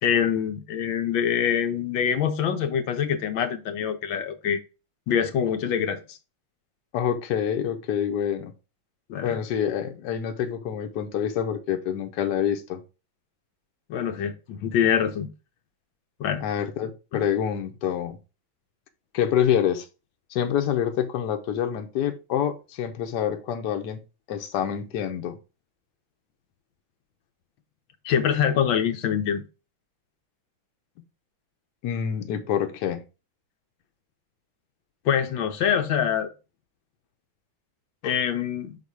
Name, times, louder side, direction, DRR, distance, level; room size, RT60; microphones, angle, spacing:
voice 1, 0.0-4.6 5.1-6.2 9.1-9.4 13.9-15.3 16.2-16.4 17.1-17.2 28.0-29.4 35.0-36.3 38.0-38.8, left 8 dB, 80° left, 1.5 m, -25 dB
voice 2, 6.9-8.5 9.2-12.8 16.4-18.2 19.1-19.9 20.3-24.0 24.3-25.4 31.8-33.0, left 9 dB, 65° left, 1.4 m, -26 dB
6.0 x 4.1 x 4.7 m
omnidirectional pair, 2.1 m